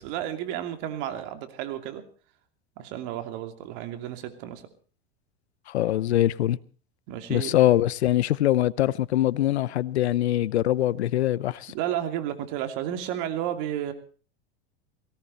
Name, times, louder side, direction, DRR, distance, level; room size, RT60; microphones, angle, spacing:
voice 1, 0.0-2.0 2.8-4.6 7.1-7.6 11.7-13.9, right 11 dB, 55° right, 2.8 m, -32 dB
voice 2, 5.7-6.6 7.3-11.7, left 13 dB, 90° left, 0.8 m, -23 dB
18.0 x 17.5 x 4.1 m
supercardioid pair, 120°, 32 cm